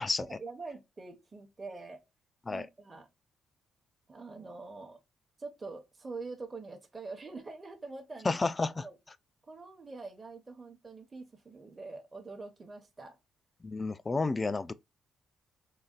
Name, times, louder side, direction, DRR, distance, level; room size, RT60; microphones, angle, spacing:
voice 1, 0.2-2.0 2.5-3.1 4.1-5.0 5.4-8.4 8.7-9.0 9.5-13.2, right 3 dB, 30° right, 0.8 m, -45 dB
voice 2, 8.2-8.9 13.6-14.7, left 3 dB, 25° left, 0.3 m, -31 dB
3.9 x 2.2 x 2.4 m
cardioid pair, 85°, 0 cm